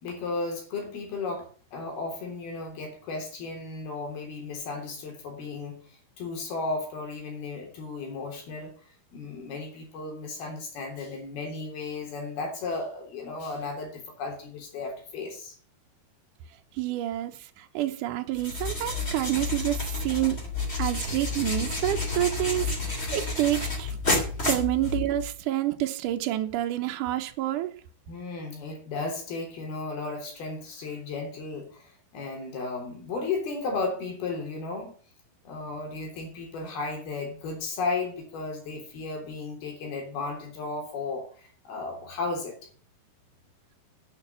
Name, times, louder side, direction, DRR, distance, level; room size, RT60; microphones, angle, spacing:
voice 1, 0.0-5.8 6.2-8.7 9.1-15.6 28.1-34.9 35.5-42.6, left 3 dB, 75° left, 5.4 m, -34 dB
voice 2, 16.8-20.4 20.8-24.2 24.5-27.7, right 14 dB, 70° right, 2.1 m, -28 dB
sound 1, 18.3-25.3, left 3 dB, 20° left, 2.8 m, -30 dB
10.5 x 9.0 x 6.8 m
omnidirectional pair, 4.4 m